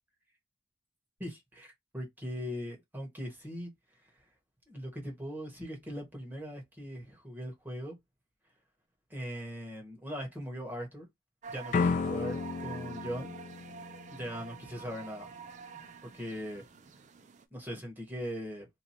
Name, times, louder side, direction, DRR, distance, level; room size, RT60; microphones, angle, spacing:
voice 1, 1.2-3.7 4.7-8.0 9.1-11.1 11.5-13.3 14.1-15.3 16.0-16.6 17.5-18.7, equal, 10° right, 1.3 m, -40 dB
sound 1, 11.4-17.5, right 6 dB, 40° right, 0.4 m, -47 dB
sound 2, 11.7-14.6, left 4 dB, 45° left, 0.3 m, -33 dB
3.0 x 2.2 x 4.1 m
head